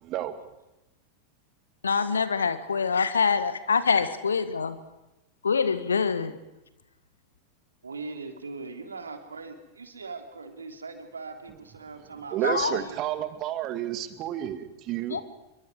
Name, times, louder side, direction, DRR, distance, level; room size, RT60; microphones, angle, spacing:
voice 1, 0.0-0.4 12.3-15.2, right 12 dB, 35° right, 11 dB, 2.2 m, -30 dB
voice 2, 1.8-4.8 5.4-6.4 12.4-12.8 15.1-15.2, left 5 dB, 70° left, 13 dB, 1.7 m, -25 dB
voice 3, 7.8-12.4 12.6-13.3, right 4 dB, 75° right, 6 dB, 3.2 m, -40 dB
26.5 x 23.5 x 4.9 m, 0.96 s
figure-of-eight pair, 90°, 0 cm